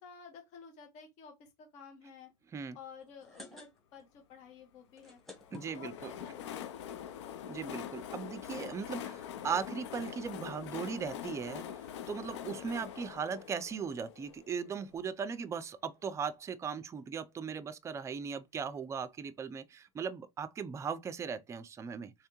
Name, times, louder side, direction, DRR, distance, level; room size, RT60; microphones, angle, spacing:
voice 1, 0.0-2.3 2.7-5.2 5.6-7.2, left 6 dB, 55° left, 1.3 m, -53 dB
sound 1, 3.0-4.1 4.4-4.5 4.8-6.3 7.0-7.1 7.3-7.4 7.6-7.9, left 2 dB, ahead, 1.2 m, -51 dB
Train, 5.4-15.0, left 9 dB, 90° left, 0.5 m, -44 dB
voice 2, 5.5-6.1 7.5-11.7 12.1-22.1, right 6 dB, 20° right, 0.4 m, -38 dB
3.4 x 3.3 x 3.0 m
supercardioid pair, 120°, 14 cm